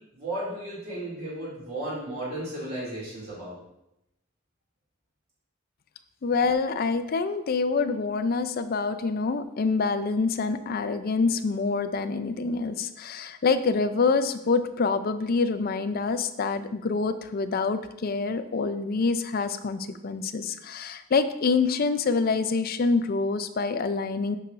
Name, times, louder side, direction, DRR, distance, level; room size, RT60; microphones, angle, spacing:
voice 1, 0.1-3.5, right 1 dB, 50° right, -7 dB, 2.5 m, -34 dB
voice 2, 6.2-24.4, left 4 dB, 50° left, 11 dB, 0.4 m, -26 dB
8.4 x 5.8 x 2.5 m, 0.85 s
head